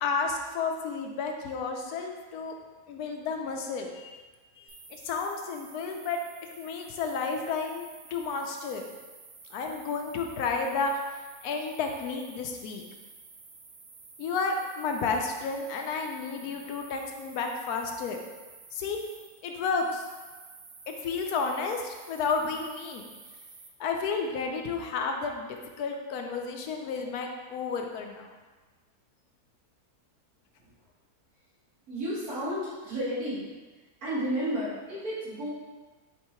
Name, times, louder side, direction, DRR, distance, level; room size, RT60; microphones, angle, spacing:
voice 1, 0.0-2.5 2.9-4.3 4.6-8.8 9.5-10.9 11.4-12.8 14.2-18.2 18.7-19.0 19.4-20.1 20.9-23.0 23.8-28.3, left 4 dB, 75° left, 3 dB, 1.0 m, -32 dB
sound 1, 4.7-23.7, right 4 dB, 90° right, 0.4 m, -51 dB
voice 2, 31.9-33.5 34.0-35.5, equal, 70° right, -10 dB, 2.2 m, -32 dB
4.4 x 2.8 x 4.3 m, 1.3 s
omnidirectional pair, 1.6 m